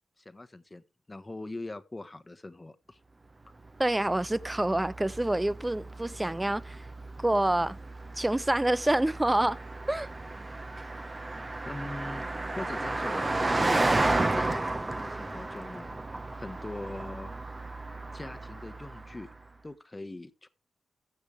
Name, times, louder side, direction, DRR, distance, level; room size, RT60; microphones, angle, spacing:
voice 1, 0.2-0.8 1.1-3.0 11.7-13.8 14.3-16.0 16.3-17.3 18.1-19.3 19.6-20.5, left 2 dB, 25° left, 1.2 m, -42 dB
Car passing by, 3.6-19.4, right 2 dB, 30° right, 1.2 m, -33 dB
voice 2, 3.8-6.9 7.2-7.8 8.2-9.6 9.9-10.1, right 1 dB, 15° right, 0.5 m, -27 dB
15.0 x 7.0 x 3.3 m
supercardioid pair, 50°, 0 cm